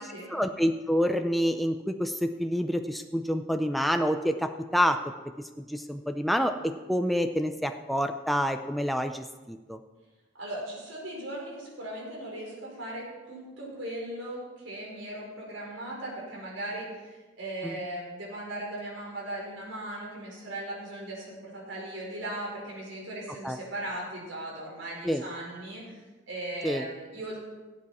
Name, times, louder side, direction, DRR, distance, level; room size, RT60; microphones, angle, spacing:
voice 1, 0.3-5.0 5.6-9.8 17.6-17.7 23.4-23.6 25.0-25.2 26.6-26.8, equal, ahead, 6 dB, 0.4 m, -27 dB
voice 2, 10.4-27.4, right 1 dB, 80° right, -4 dB, 4.9 m, -38 dB
18.0 x 8.5 x 4.2 m, 1.2 s
head